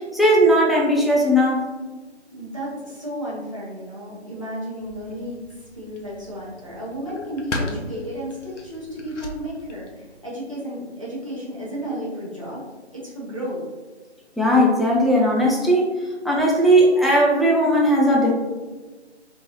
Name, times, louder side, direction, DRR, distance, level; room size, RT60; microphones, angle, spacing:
voice 1, 0.1-1.6 14.4-15.9 16.2-18.3, equal, ahead, -4 dB, 0.4 m, -17 dB
voice 2, 2.3-5.4 5.8-12.6 12.9-13.6, equal, 30° right, -8 dB, 0.8 m, -33 dB
sound 1, 4.8-10.2, left 2 dB, 90° left, 0.8 m, -36 dB
3.6 x 2.8 x 2.6 m, 1.3 s
figure-of-eight pair, 180°, 35 cm